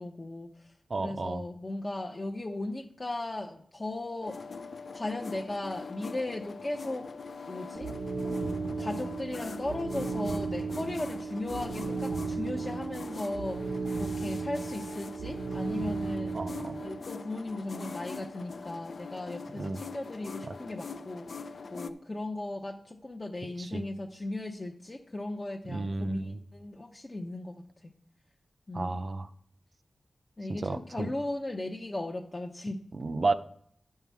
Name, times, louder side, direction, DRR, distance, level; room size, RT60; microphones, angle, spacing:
voice 1, 0.0-4.4 4.9-7.1 7.5-7.9 8.8-16.4 16.8-21.3 21.7-27.6 28.7-29.0 30.4-32.8, left 2 dB, 30° left, 1 dB, 0.7 m, -37 dB
voice 2, 0.9-1.4 16.3-16.8 19.5-19.8 20.5-20.6 23.6-23.8 25.7-26.4 28.7-29.3 30.5-31.1 32.9-33.3, right 3 dB, 50° right, 10 dB, 0.5 m, -32 dB
sound 1, 4.2-21.9, left 4 dB, 65° left, 0.5 m, -43 dB
sound 2, 7.7-17.0, right 4 dB, 90° right, 0.9 m, -35 dB
11.0 x 5.6 x 4.6 m, 0.64 s
wide cardioid pair, 115°, 0 cm